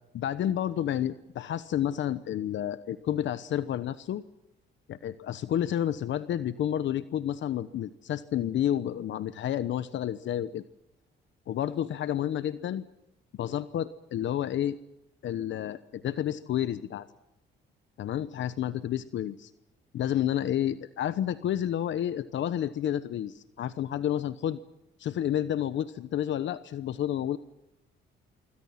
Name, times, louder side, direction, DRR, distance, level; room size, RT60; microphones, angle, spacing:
voice 1, 0.1-4.2 4.9-10.6 11.5-12.8 13.3-14.8 15.2-17.1 18.0-19.5 19.9-24.6 25.0-27.4, left 11 dB, 70° left, 14 dB, 1.0 m, -30 dB
26.0 x 23.5 x 5.8 m, 0.88 s
cardioid pair, 90°, 20 cm